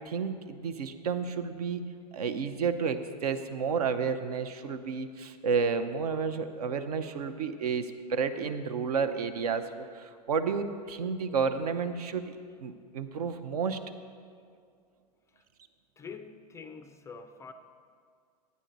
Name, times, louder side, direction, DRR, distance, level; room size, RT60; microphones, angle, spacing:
voice 1, 0.1-1.8 2.1-13.8, right 5 dB, 65° right, 9 dB, 0.7 m, -31 dB
voice 2, 16.0-17.5, left 5 dB, 15° left, 9 dB, 0.3 m, -45 dB
11.0 x 9.4 x 3.9 m, 2.2 s
figure-of-eight pair, 95°, 21 cm